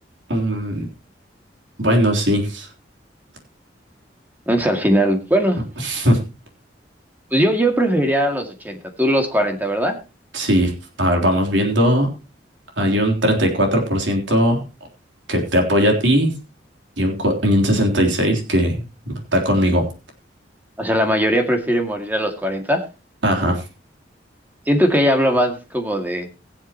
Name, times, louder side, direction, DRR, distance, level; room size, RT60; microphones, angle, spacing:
voice 1, 0.3-0.9 1.8-2.7 5.8-6.2 10.3-10.7 11.0-12.1 12.8-14.6 15.3-16.3 17.0-19.8 23.2-23.6, equal, 85° right, 2 dB, 3.6 m, -19 dB
voice 2, 4.5-5.6 7.3-10.0 20.8-22.8 24.7-26.3, equal, 10° right, 4 dB, 2.2 m, -19 dB
22.0 x 7.5 x 3.0 m, 0.30 s
head